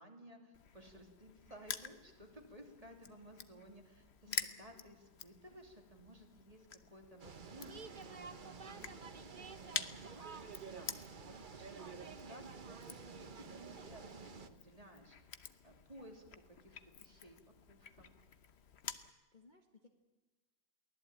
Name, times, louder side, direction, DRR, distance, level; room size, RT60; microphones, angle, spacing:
voice 1, 0.0-15.2 15.6-17.4 17.7-18.1, equal, 20° right, 2 dB, 3.0 m, -57 dB
Crushing, 0.5-19.1, left 7 dB, 45° left, 1.0 m, -49 dB
voice 2, 4.2-4.7 19.3-19.9, left 5 dB, 25° left, 3 dB, 1.5 m, -62 dB
sound 1, 7.2-14.5, right 5 dB, 35° right, 0.9 m, -50 dB
23.0 x 16.5 x 8.8 m, 1.3 s
omnidirectional pair, 2.0 m